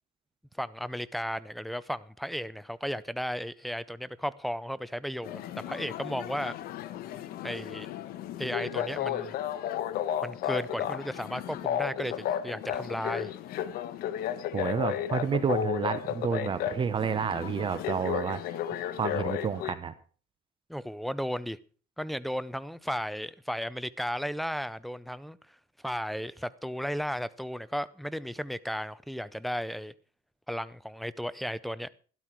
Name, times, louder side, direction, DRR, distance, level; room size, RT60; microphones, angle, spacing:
voice 1, 0.6-6.5 7.4-7.9 8.4-9.4 10.2-13.3 20.7-21.6 22.0-25.4 25.8-29.9 30.5-31.9, equal, ahead, 0.5 m, -34 dB
sound 1, 5.2-19.7, left 10 dB, 70° left, 1.1 m, -34 dB
voice 2, 14.5-18.6 19.0-19.9, right 6 dB, 30° right, 0.9 m, -30 dB
12.5 x 12.0 x 4.5 m
cardioid pair, 130°, 16 cm